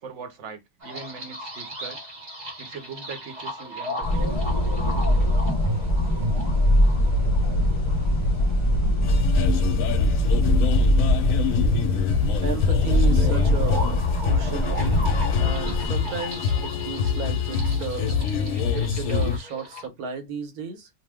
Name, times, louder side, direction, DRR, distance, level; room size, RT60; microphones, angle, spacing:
voice 1, 0.0-2.0 2.6-4.3 8.7-8.8 10.3-10.5, right 5 dB, 60° right, 1.0 m, -41 dB
sound 1, 0.8-19.9, equal, 40° right, 0.7 m, -35 dB
sound 2, 4.0-15.9, equal, 25° left, 0.7 m, -22 dB
sound 3, 9.0-19.4, left 7 dB, 75° left, 1.0 m, -25 dB
voice 2, 12.4-15.0 15.4-18.2 18.7-20.9, right 6 dB, 90° right, 1.4 m, -33 dB
2.9 x 2.1 x 3.3 m
omnidirectional pair, 1.5 m